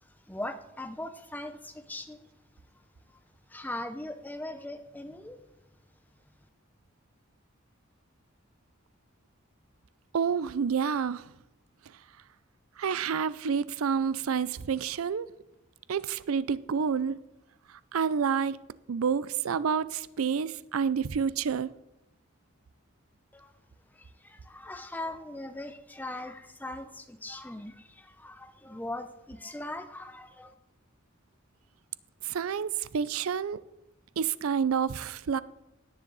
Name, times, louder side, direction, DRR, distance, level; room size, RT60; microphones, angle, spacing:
voice 1, 0.3-2.3 3.5-5.4 23.3-23.5 23.9-30.5, left 1 dB, 10° left, 0.7 m, -40 dB
voice 2, 10.1-11.2 12.8-15.3 15.9-17.2 17.9-18.6 18.9-21.7 32.2-33.6 34.2-35.4, right 6 dB, 90° right, 0.5 m, -28 dB
17.5 x 10.0 x 4.0 m
head